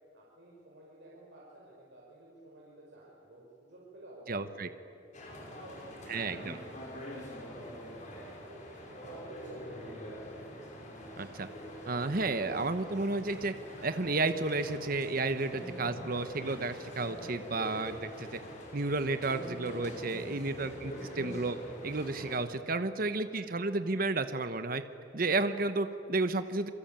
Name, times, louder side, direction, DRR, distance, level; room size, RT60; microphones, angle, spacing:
voice 1, 0.1-4.7 5.5-10.1 23.0-23.5, right 1 dB, 75° right, -5 dB, 5.4 m, -54 dB
voice 2, 4.3-4.7 6.1-6.6 11.2-11.5 11.9-13.5 13.8-18.4 18.7-21.6 21.8-24.8 25.1-26.7, right 3 dB, 50° right, 10 dB, 1.1 m, -32 dB
sound 1, 5.1-22.4, equal, 40° left, 6.4 m, -44 dB
28.0 x 23.5 x 9.0 m, 2.8 s
head